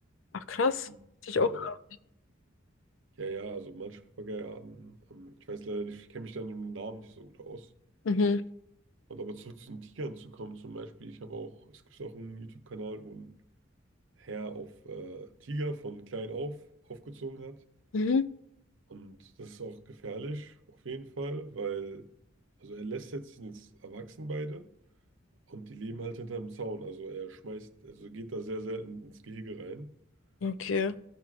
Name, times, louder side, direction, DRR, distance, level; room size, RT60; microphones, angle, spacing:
voice 1, 0.3-0.9 1.3-1.7 8.1-8.4 17.9-18.2 30.4-30.9, left 4 dB, 80° left, 0.5 m, -27 dB
voice 2, 1.3-1.7 3.2-7.7 9.1-13.3 14.2-17.6 18.9-22.1 22.6-24.7 25.5-29.9, right 2 dB, 75° right, 0.7 m, -40 dB
15.5 x 6.0 x 2.5 m
head